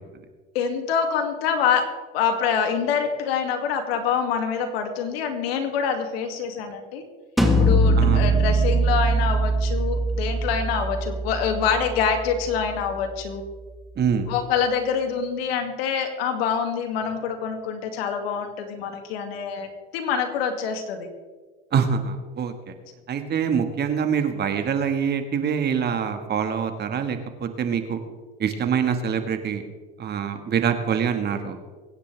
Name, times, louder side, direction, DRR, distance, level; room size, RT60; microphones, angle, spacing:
voice 1, 0.5-1.8 2.1-7.0 7.4-13.4 14.3-21.1, left 7 dB, 80° left, 5 dB, 2.4 m, -26 dB
sound 1, 7.4-13.0, right 2 dB, ahead, 1.6 m, -22 dB
voice 2, 8.0-8.4 14.0-14.3 21.7-22.7 23.1-28.0 28.4-29.6 30.0-31.6, right 7 dB, 35° right, 7 dB, 1.7 m, -25 dB
24.0 x 9.9 x 3.4 m, 1.4 s
supercardioid pair, 115°, 30 cm